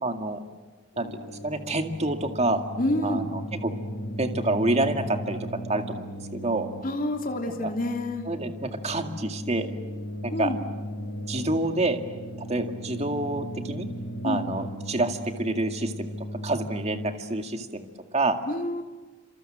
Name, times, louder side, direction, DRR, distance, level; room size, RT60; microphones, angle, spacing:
voice 1, 0.0-0.4 1.0-2.6 3.0-3.7 4.2-5.4 5.7-6.1 6.3-6.7 7.6-7.7 8.3-9.7 10.2-10.5 11.3-12.0 12.5-13.9 14.2-16.1 16.4-17.9 18.1-18.4, right 2 dB, 30° right, 5 dB, 2.1 m, -27 dB
sound 1, 0.9-17.1, equal, 85° left, 6.0 m, -37 dB
voice 2, 2.8-3.3 6.8-8.3 10.3-10.6 14.2-14.5 18.5-18.8, left 1 dB, 40° left, 3 dB, 3.1 m, -28 dB
27.5 x 27.5 x 7.8 m, 1.3 s
head